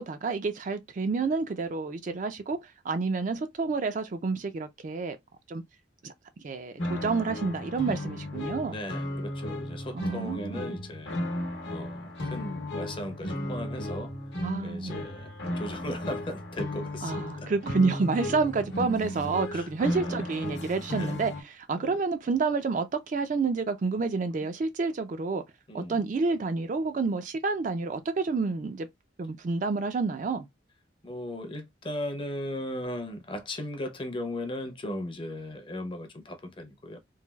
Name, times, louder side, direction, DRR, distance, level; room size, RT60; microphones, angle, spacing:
voice 1, 0.0-2.6 2.8-5.2 5.5-5.6 6.0-6.1 6.4-8.7 9.9-10.7 14.4-15.1 17.0-25.4 25.7-28.9 29.2-30.5, right 4 dB, 40° right, 0.3 m, -29 dB
sound 1, 6.8-21.4, left 1 dB, 65° left, 0.9 m, -35 dB
voice 2, 8.7-11.2 11.7-14.1 14.6-17.5 19.5-20.3 20.9-21.2 21.7-21.9 25.7-26.0 31.0-37.0, left 1 dB, 25° left, 0.5 m, -37 dB
3.1 x 2.3 x 2.2 m
head